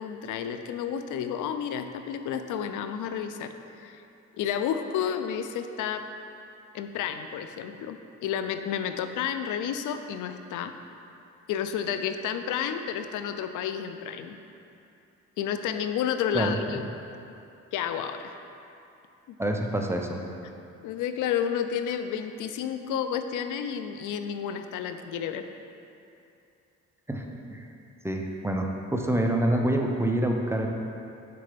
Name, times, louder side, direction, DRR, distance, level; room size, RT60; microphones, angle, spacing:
voice 1, 0.0-3.5 3.8-4.0 4.4-6.0 6.7-10.7 11.5-14.4 15.4-16.8 17.7-18.3 20.8-25.5, left 8 dB, 85° left, 8 dB, 0.5 m, -31 dB
voice 2, 19.4-20.2 27.1-27.7 28.0-30.7, right 1 dB, 10° right, 1 dB, 0.6 m, -27 dB
6.8 x 4.4 x 5.1 m, 2.7 s
cardioid pair, 90°, 30 cm